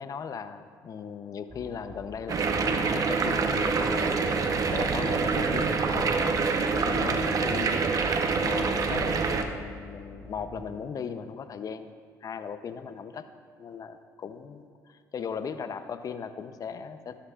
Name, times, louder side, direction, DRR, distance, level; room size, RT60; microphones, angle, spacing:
voice 1, 0.0-6.4 6.7-7.8 8.4-11.9 12.2-13.3 13.6-17.2, left 6 dB, 45° left, 10 dB, 0.7 m, -38 dB
sound 1, 1.5-10.6, left 1 dB, 10° right, 3.1 m, -47 dB
sound 2, 2.3-9.4, right 4 dB, 45° right, 0.9 m, -26 dB
14.5 x 12.5 x 2.5 m, 2.2 s
supercardioid pair, 75°, 8 cm